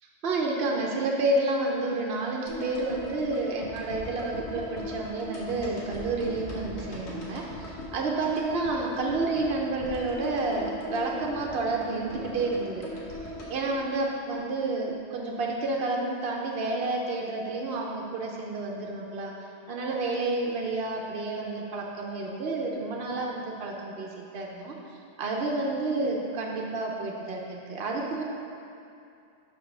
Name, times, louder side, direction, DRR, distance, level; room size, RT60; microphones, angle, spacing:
voice 1, 0.2-12.8 13.2-19.3 19.7-24.8 25.2-28.2, right 2 dB, 65° right, -1 dB, 0.9 m, -30 dB
sound 1, 2.5-14.7 14.9-15.0, left 1 dB, 85° left, 1.5 m, -39 dB
5.4 x 5.2 x 6.0 m, 2.6 s
omnidirectional pair, 1.1 m